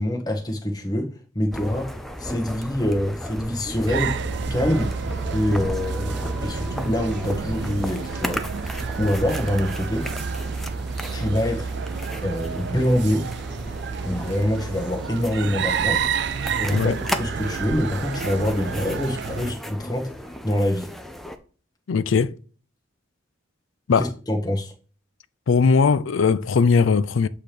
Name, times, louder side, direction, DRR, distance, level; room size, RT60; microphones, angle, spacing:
voice 1, 0.0-4.2 4.5-4.9 5.3-10.1 11.1-11.7 12.2-13.3 14.0-16.0 16.6-16.9 17.2-20.1 20.4-20.9 24.0-24.7, left 1 dB, 20° left, 1.1 m, -25 dB
sound 1, 1.5-21.4, equal, ahead, 0.5 m, -35 dB
sound 2, 3.9-19.5, right 5 dB, 55° right, 0.4 m, -29 dB
voice 2, 21.9-22.4 23.9-24.1 25.5-27.3, left 5 dB, 80° left, 0.4 m, -19 dB
8.2 x 3.0 x 5.0 m
head